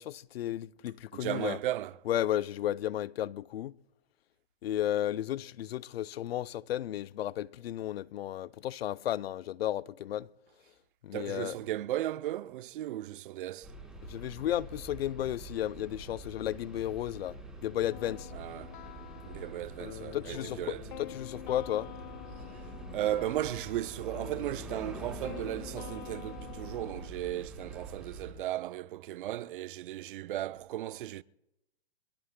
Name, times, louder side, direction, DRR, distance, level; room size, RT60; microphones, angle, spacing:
voice 1, 0.0-1.6 2.1-3.7 4.6-10.3 11.0-11.5 14.1-17.4 17.6-18.3 20.1-21.9, left 12 dB, 70° left, 0.6 m, -33 dB
voice 2, 1.1-2.0 11.1-13.7 18.3-18.7 19.2-20.9 22.5-31.2, right 13 dB, 55° right, 0.5 m, -36 dB
sound 1, 13.6-28.3, right 2 dB, ahead, 4.2 m, -46 dB
sound 2, 17.9-27.1, left 12 dB, 50° left, 0.9 m, -47 dB
24.5 x 22.0 x 2.2 m
hypercardioid pair, 140°, 32 cm